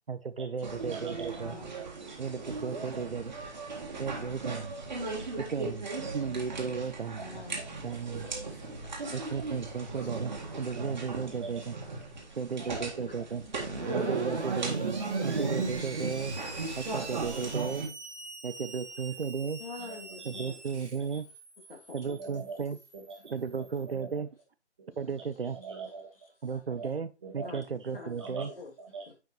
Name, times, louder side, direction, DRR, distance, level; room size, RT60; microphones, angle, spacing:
voice 1, 0.1-1.5 2.2-3.3 4.0-4.7 5.4-5.9 6.1-7.2 7.8-8.3 9.1-11.7 12.4-13.4 13.9-15.0 15.2-16.3 16.8-17.9 18.4-19.6 20.3-21.3 21.9-22.8 23.2-24.3 25.0-25.6 26.4-28.5, right 5 dB, 60° right, 13 dB, 0.6 m, -35 dB
sound 1, 0.6-17.9, right 3 dB, 40° right, 1.8 m, -36 dB
voice 2, 0.9-1.3 1.8-2.2 4.4-4.6 6.0-6.1 7.6-8.0 9.0-9.1 9.3-9.4 10.8-10.9 11.4-11.7 12.6-13.0 14.6-14.9 17.4-17.7 19.8-20.5 22.1-22.6 22.9-23.2 23.6-24.2 24.8-24.9 25.5-26.3 26.7-26.9 27.2-27.6 28.2-29.0, right 4 dB, 25° right, 1 dB, 1.6 m, -44 dB
voice 3, 1.4-2.4 3.7-4.2 5.1-5.4 7.2-9.3 10.0-10.1 10.6-10.8 12.2-12.4 13.9-14.3 14.6-14.8 15.2-15.5 16.8-16.9 19.6-20.9 21.7-22.4 23.3-23.4 24.9-25.0 26.5-26.6 27.4-27.6 27.9-28.2 28.5-28.7 29.1-29.2, left 3 dB, 55° left, 0 dB, 2.7 m, -48 dB
Screech, 13.5-24.0, right 3 dB, 80° right, 1.8 m, -44 dB
9.3 x 5.1 x 3.1 m, 0.29 s
figure-of-eight pair, 155°, 34 cm